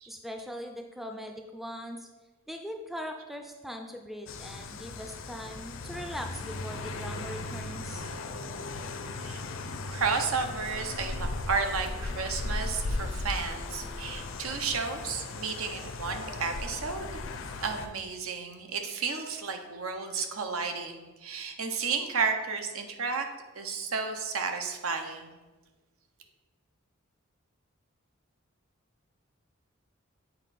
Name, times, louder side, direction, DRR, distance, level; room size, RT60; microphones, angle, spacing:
voice 1, 0.1-2.1 2.5-8.1, equal, ahead, 4 dB, 0.4 m, -40 dB
sound 1, 4.3-17.9, left 2 dB, 70° left, 0.5 m, -37 dB
sound 2, 5.8-16.7, left 1 dB, 55° right, 2.1 m, -52 dB
voice 2, 9.9-17.1 17.6-23.3 23.6-25.3, right 5 dB, 85° right, 6 dB, 0.8 m, -32 dB
8.1 x 4.4 x 4.1 m, 1.2 s
head